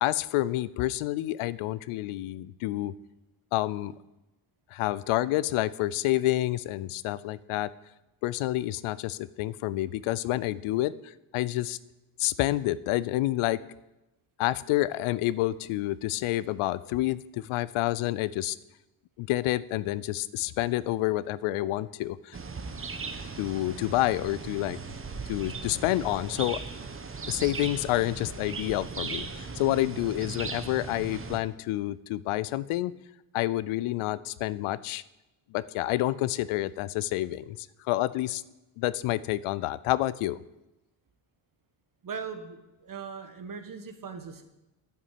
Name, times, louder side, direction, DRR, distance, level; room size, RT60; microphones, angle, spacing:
voice 1, 0.0-2.9 3.5-3.9 4.7-7.7 8.2-11.8 12.2-13.6 14.4-18.6 19.2-22.4 23.4-24.8 25.3-26.6 27.3-32.9 33.3-35.0 35.5-38.4 38.8-40.4, left 16 dB, 85° left, 18 dB, 0.6 m, -28 dB
sound 1, 22.3-31.4, right 4 dB, 25° right, 1.1 m, -38 dB
voice 2, 42.0-44.4, right 6 dB, 40° right, 8 dB, 1.5 m, -39 dB
9.0 x 6.1 x 8.4 m, 0.97 s
cardioid pair, 75°, 49 cm